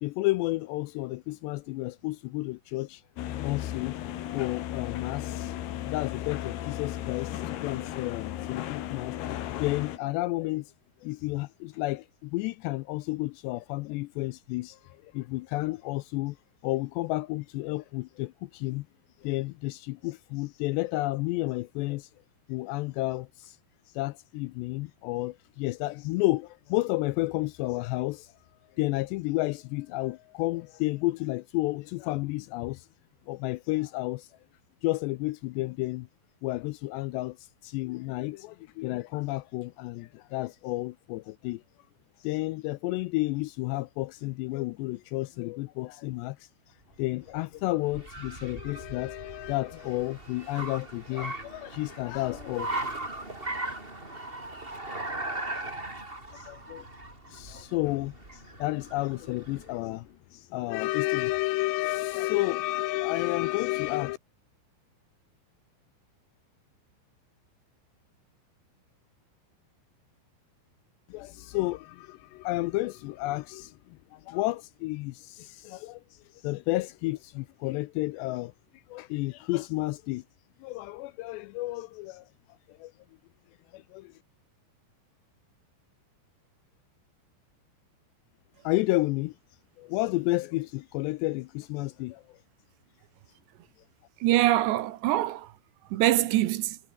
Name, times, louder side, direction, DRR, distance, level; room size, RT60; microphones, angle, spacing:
voice 1, 0.0-3.0 3.4-4.0 4.3-5.5 5.9-9.2 9.5-10.7 11.0-16.4 16.6-18.9 19.2-22.1 22.5-23.6 24.0-28.3 28.8-32.9 33.3-34.3 34.8-36.1 36.4-37.4 37.6-41.6 42.2-46.4 47.0-52.7 56.3-56.9 57.3-64.2 71.1-76.0 76.4-78.5 78.9-80.2 80.6-82.3 82.7-82.9 83.7-84.1 88.6-89.3 89.8-92.2, left 20 dB, 85° left, 2.5 m, -31 dB
sound 1, 3.2-10.0, left 12 dB, 65° left, 3.3 m, -35 dB
Car, 46.9-59.8, right 2 dB, 10° right, 4.2 m, -39 dB
voice 2, 94.2-95.5 95.9-96.8, right 14 dB, 75° right, 3.1 m, -24 dB
omnidirectional pair, 5.5 m